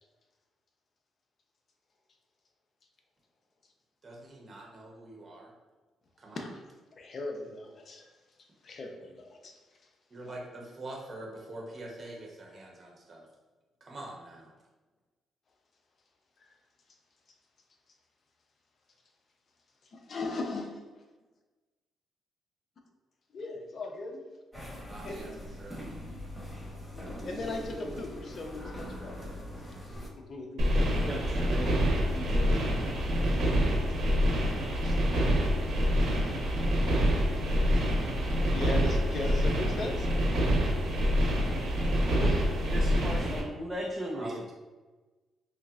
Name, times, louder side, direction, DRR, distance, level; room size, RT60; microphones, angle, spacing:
voice 1, 4.0-5.5 6.2-6.5 10.1-13.3 13.8-14.5 24.9-25.8 26.6-27.3 44.1-44.5, right 1 dB, 40° right, -2 dB, 0.9 m, -45 dB
voice 2, 7.0-8.1 8.6-9.5 10.2-10.4 16.4-16.5 19.9-21.0 23.3-24.2 25.0-25.2 26.9-29.2 30.3-30.9 34.8-35.0 38.4-40.1 42.1-42.5, left 2 dB, 50° left, 3 dB, 0.6 m, -38 dB
sound 1, 24.5-30.1, equal, 5° left, 1.4 m, -42 dB
sound 2, 30.6-43.4, equal, 80° right, 1.1 m, -26 dB
voice 3, 31.0-31.7 32.1-33.0 42.7-44.5, equal, 15° right, -2 dB, 0.5 m, -37 dB
5.7 x 2.1 x 2.4 m, 1.2 s
cardioid pair, 90°, 0 cm